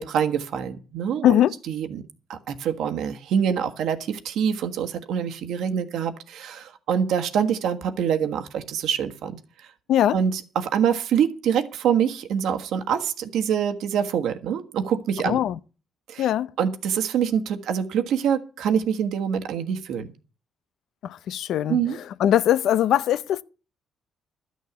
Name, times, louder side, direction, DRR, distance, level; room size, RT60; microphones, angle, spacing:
voice 1, 0.0-1.4 1.7-2.0 2.3-9.7 10.1-15.4 16.1-16.3 16.6-20.1 21.7-22.0, right 8 dB, 80° right, 1.4 m, -25 dB
voice 2, 15.2-15.5 16.2-16.5 21.0-21.8 22.2-23.4, left 11 dB, 75° left, 0.6 m, -21 dB
12.5 x 6.4 x 8.0 m
cardioid pair, 90°, 0 cm